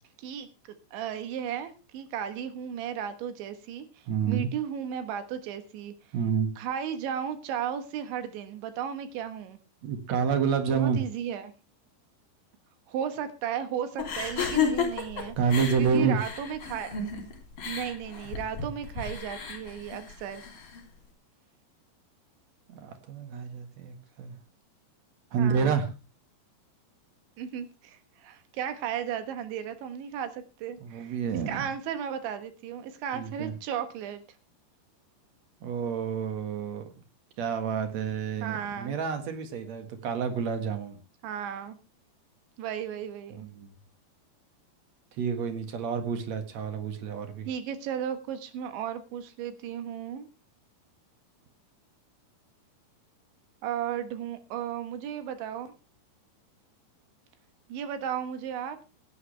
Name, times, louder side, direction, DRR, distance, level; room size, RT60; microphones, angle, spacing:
voice 1, 0.9-5.9 6.6-9.6 10.7-11.5 12.9-15.4 15.8-16.9 17.7-20.4 25.4-25.8 27.4-31.2 31.5-34.2 38.4-39.0 41.2-41.8 42.6-43.5 47.5-50.3 53.6-55.7 57.7-58.8, right 9 dB, 80° right, 9 dB, 3.7 m, -35 dB
voice 2, 4.1-4.5 6.1-6.5 9.8-11.0 15.4-16.2 22.7-24.3 25.3-25.9 30.8-31.7 33.1-33.5 35.6-36.9 37.4-41.0 43.4-43.7 45.2-47.5, right 6 dB, 50° right, 7 dB, 2.3 m, -29 dB
sound 1, 14.0-20.8, left 6 dB, 35° left, 3.7 m, -33 dB
17.0 x 11.0 x 3.3 m, 0.31 s
omnidirectional pair, 5.2 m